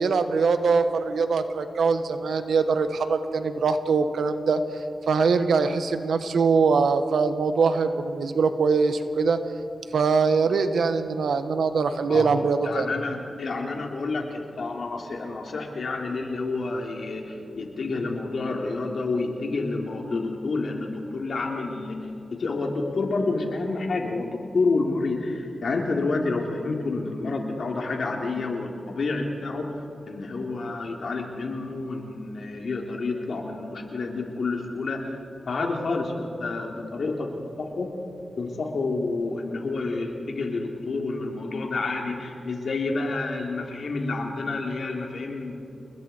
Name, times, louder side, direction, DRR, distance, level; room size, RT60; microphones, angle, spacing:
voice 1, 0.0-9.4 9.9-12.9, right 4 dB, 85° right, 9 dB, 1.3 m, -23 dB
voice 2, 12.6-21.9 22.3-29.7 30.1-35.2 35.5-37.9 38.4-45.5, left 3 dB, 70° left, 1 dB, 3.3 m, -29 dB
29.0 x 20.5 x 4.5 m, 2.8 s
cardioid pair, 75°, 0 cm